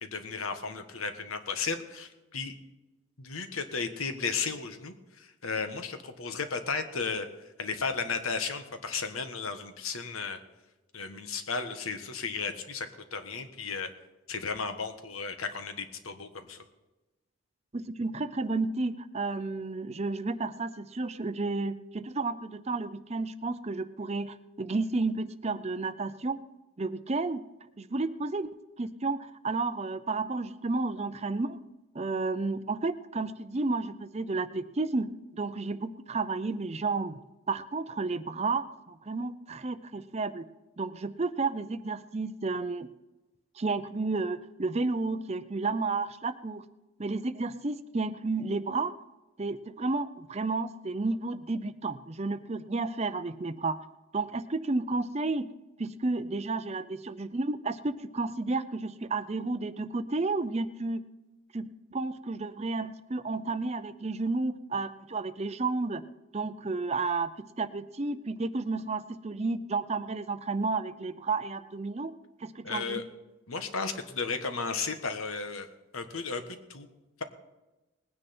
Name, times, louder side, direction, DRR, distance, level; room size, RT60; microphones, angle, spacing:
voice 1, 0.0-2.5 3.2-7.3 7.6-10.4 10.9-13.9 14.3-16.6 72.6-73.0 73.5-75.7 75.9-76.9, left 5 dB, 80° left, 8 dB, 1.4 m, -34 dB
voice 2, 17.7-26.4 26.8-27.4 27.8-28.5 28.8-31.6 31.9-37.2 37.5-40.4 40.8-42.9 43.6-46.6 47.0-48.9 49.4-53.8 54.1-55.5 55.8-61.0 61.5-66.0 66.3-67.3 67.6-72.1 72.4-73.0, right 3 dB, 30° right, 12 dB, 0.6 m, -32 dB
19.5 x 9.8 x 4.4 m, 1.1 s
head